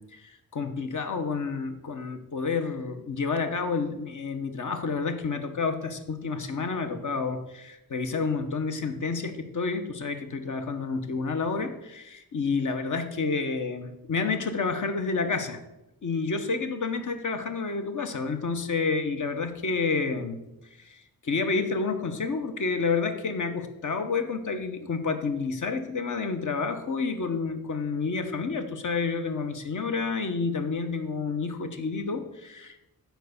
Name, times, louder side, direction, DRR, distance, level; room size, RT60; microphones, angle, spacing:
voice 1, 0.0-15.6 16.0-20.4 20.8-32.8, left 4 dB, 55° left, 7 dB, 1.0 m, -29 dB
9.2 x 4.6 x 6.5 m, 0.91 s
wide cardioid pair, 150°, 36 cm